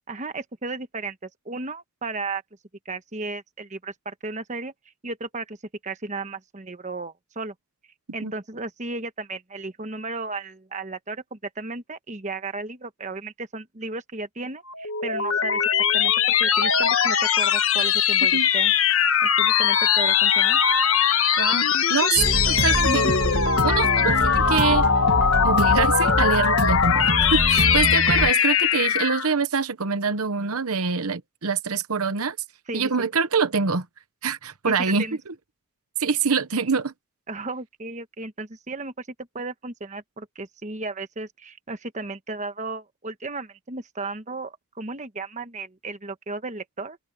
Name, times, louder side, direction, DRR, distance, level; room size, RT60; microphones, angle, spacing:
voice 1, 0.1-2.4 2.8-4.7 5.0-5.6 5.8-7.5 8.1-15.6 15.9-16.1 16.4-18.7 19.2-20.6 22.9-23.1 32.7-32.9 34.6-35.2 37.3-39.1 39.3-47.0, right 3 dB, 35° right, 1.2 m, -34 dB
sound 1, 14.7-29.3, left 8 dB, 65° left, 1.3 m, -21 dB
voice 2, 21.4-23.1 23.6-24.9 25.4-32.4 32.7-33.9 34.2-35.3 36.0-36.9, right 5 dB, 75° right, 1.0 m, -25 dB
sound 2, 22.2-28.3, right 1 dB, 50° right, 2.2 m, -25 dB
open air
head